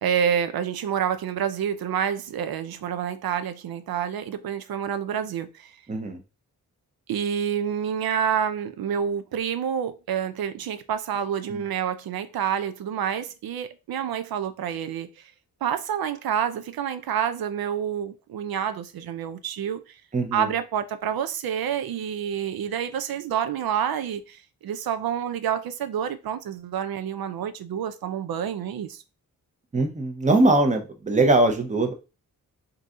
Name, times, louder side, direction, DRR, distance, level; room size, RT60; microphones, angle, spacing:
voice 1, 0.0-5.8 7.1-15.3 15.6-20.0 20.3-29.0, right 8 dB, 80° right, 0.5 m, -28 dB
voice 2, 5.9-6.2 11.5-11.6 20.1-20.5 29.7-31.9, right 2 dB, 20° right, 0.7 m, -21 dB
3.8 x 2.7 x 3.6 m
wide cardioid pair, 145°, 36 cm